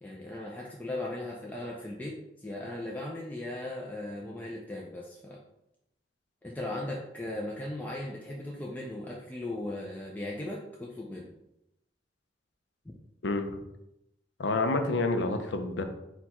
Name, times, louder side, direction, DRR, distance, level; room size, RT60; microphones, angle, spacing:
voice 1, 0.0-5.4 6.4-11.3, left 1 dB, 10° left, -3 dB, 0.4 m, -38 dB
voice 2, 13.2-13.6 14.4-15.8, left 3 dB, 70° left, 6 dB, 0.5 m, -28 dB
4.4 x 2.3 x 4.2 m, 0.86 s
head